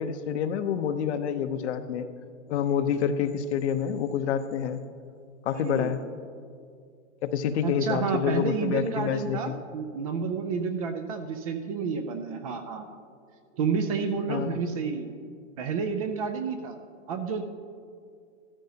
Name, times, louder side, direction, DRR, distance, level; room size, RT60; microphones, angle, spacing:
voice 1, 0.0-2.1 2.5-4.8 5.4-6.0 7.2-9.5 14.3-14.6, left 8 dB, 55° left, 10 dB, 0.8 m, -28 dB
voice 2, 5.6-5.9 7.6-13.0 13.6-15.1 15.6-16.8 17.1-17.4, right 5 dB, 30° right, 8 dB, 0.4 m, -30 dB
14.0 x 13.5 x 2.8 m, 2.3 s
hypercardioid pair, 145°, 39 cm